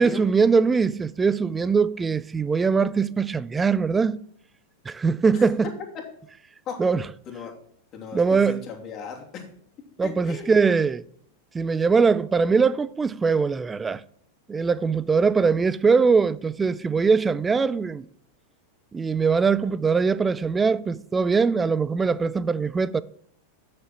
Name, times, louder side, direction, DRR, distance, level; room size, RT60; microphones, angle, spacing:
voice 1, 0.0-4.2 4.9-5.7 6.8-7.0 8.1-8.6 10.0-11.0 11.5-14.0 14.5-18.1 18.9-23.0, right 5 dB, 15° right, 0.4 m, -21 dB
voice 2, 7.3-7.6 7.9-9.4 10.0-10.6, left 6 dB, 40° left, 2.7 m, -37 dB
6.9 x 6.5 x 7.3 m
hypercardioid pair, 115°, 0 cm